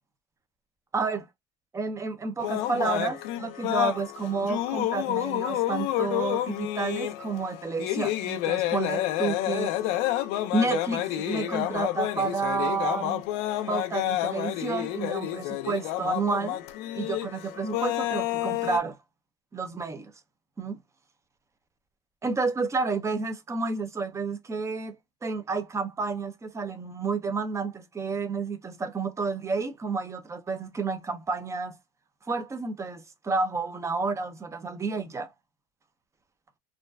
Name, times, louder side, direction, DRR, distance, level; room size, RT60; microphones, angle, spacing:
voice 1, 0.9-1.3 1.7-9.7 10.5-13.2 13.7-16.6 16.9-19.0 19.5-20.1 20.6-20.8 22.2-25.0 25.2-31.8 32.2-35.3, right 4 dB, 20° right, 0.5 m, -30 dB
sound 1, 2.4-18.8, left 14 dB, 75° left, 0.5 m, -29 dB
2.5 x 2.2 x 2.2 m
supercardioid pair, 110°, 17 cm